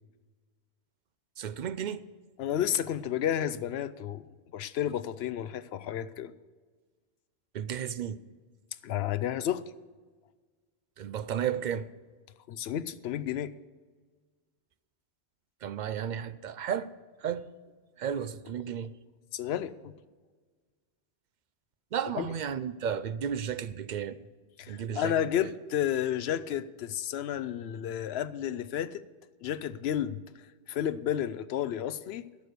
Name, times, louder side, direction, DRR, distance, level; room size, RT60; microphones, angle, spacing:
voice 1, 1.4-2.0 7.5-8.2 11.0-11.9 15.6-16.9 17.2-17.5 18.0-18.9 21.9-24.2 24.7-25.1 25.4-25.5, right 8 dB, 55° right, 0.5 m, -33 dB
voice 2, 2.4-4.2 4.5-6.3 8.8-9.6 12.5-13.5 19.3-19.9 22.2-22.3 24.6-29.0 29.4-30.2 30.7-32.2, left 10 dB, 70° left, 0.8 m, -31 dB
12.0 x 6.7 x 7.9 m
omnidirectional pair, 1.1 m